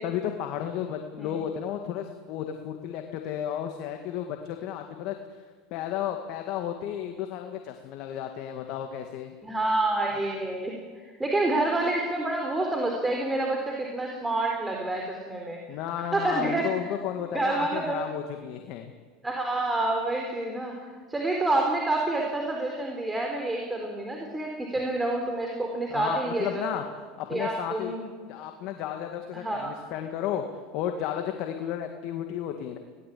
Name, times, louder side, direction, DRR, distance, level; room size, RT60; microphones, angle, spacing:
voice 1, 0.0-5.4 5.7-9.3 15.7-18.9 25.9-26.8 27.2-28.0 28.3-30.4 30.7-32.8, left 10 dB, 60° left, 5 dB, 2.1 m, -33 dB
voice 2, 9.4-10.8 11.2-15.6 16.1-16.7 17.3-18.0 19.2-20.8 21.1-26.6 27.3-28.0 29.3-29.7, right 2 dB, 10° right, 1 dB, 4.1 m, -28 dB
22.0 x 18.0 x 8.7 m, 1.5 s
supercardioid pair, 105°, 0 cm